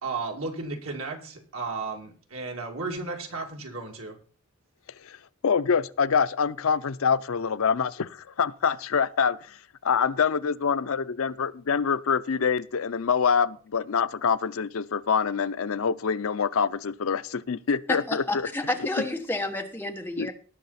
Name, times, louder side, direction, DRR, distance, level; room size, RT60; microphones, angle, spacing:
voice 1, 0.0-4.1, right 3 dB, 70° right, 2.4 m, -34 dB
voice 2, 5.4-18.5 20.2-20.3, left 6 dB, 70° left, 0.5 m, -25 dB
voice 3, 17.9-20.3, left 2 dB, 10° left, 1.2 m, -30 dB
18.5 x 6.4 x 4.1 m
head